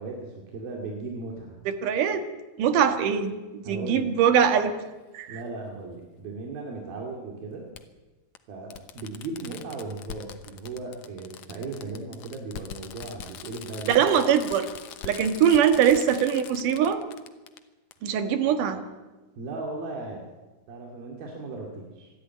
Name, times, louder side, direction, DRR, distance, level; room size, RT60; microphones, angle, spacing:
voice 1, 0.0-1.6 3.7-4.1 5.3-7.6 8.5-14.0 19.4-20.2 20.7-22.1, right 3 dB, 85° right, 0 dB, 4.2 m, -37 dB
voice 2, 1.7-2.2 2.6-4.7 5.1-5.4 13.9-14.7 15.0-17.0 18.0-18.8, right 8 dB, 70° right, 8 dB, 2.9 m, -22 dB
Fireworks, 4.4-4.5 6.0-6.1 7.7-7.8 8.3-8.4 8.7-17.6 17.9-18.0, left 9 dB, 65° left, 2.0 m, -42 dB
25.0 x 12.0 x 9.4 m, 1.2 s
omnidirectional pair, 4.1 m